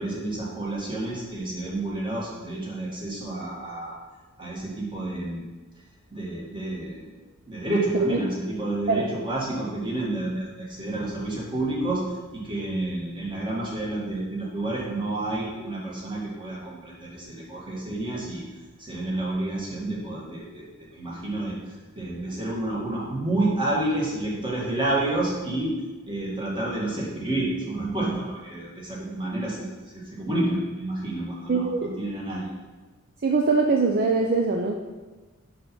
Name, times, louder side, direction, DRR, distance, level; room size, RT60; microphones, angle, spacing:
voice 1, 0.0-4.0 4.4-5.5 6.1-7.1 7.5-18.4 18.8-25.7 26.1-32.5, right 2 dB, 25° right, -5 dB, 2.0 m, -29 dB
voice 2, 31.5-32.0 33.2-34.8, right 3 dB, 45° right, 2 dB, 0.5 m, -22 dB
5.8 x 5.1 x 6.1 m, 1.2 s
head